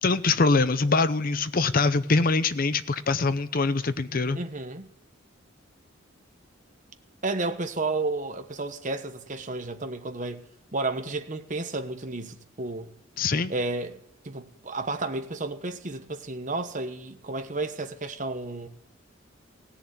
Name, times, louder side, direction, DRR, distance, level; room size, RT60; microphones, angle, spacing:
voice 1, 0.0-4.4 13.2-13.5, left 3 dB, 45° left, 0.7 m, -23 dB
voice 2, 4.3-4.9 7.2-10.4 10.7-12.9 13.5-18.7, right 2 dB, 40° right, 1.1 m, -32 dB
16.5 x 7.1 x 9.3 m
head